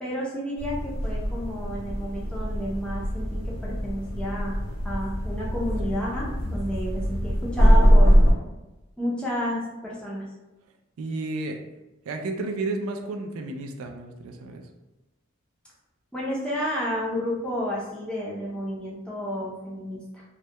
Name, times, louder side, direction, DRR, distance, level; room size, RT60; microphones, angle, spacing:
voice 1, 0.0-4.6 4.8-8.1 9.0-10.3 16.1-20.2, equal, 5° left, -6 dB, 0.5 m, -31 dB
sound 1, 0.6-8.3, equal, 70° left, 0.6 m, -22 dB
voice 2, 11.0-11.6 12.1-14.6, right 2 dB, 80° right, 3 dB, 0.3 m, -32 dB
2.2 x 2.2 x 2.7 m, 1.0 s
head